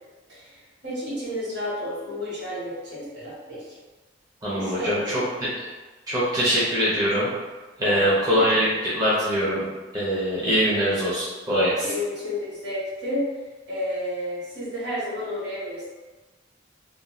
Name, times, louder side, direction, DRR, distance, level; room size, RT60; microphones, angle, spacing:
voice 1, 0.8-3.8 4.5-5.2 7.8-8.8 11.8-13.3 13.7-15.9, left 1 dB, 65° right, -8 dB, 1.3 m, -31 dB
voice 2, 4.4-5.0 5.6-5.7 6.1-7.3 7.8-9.6 9.9-11.9, equal, 20° right, -9 dB, 0.6 m, -23 dB
2.5 x 2.3 x 3.0 m, 1.3 s
head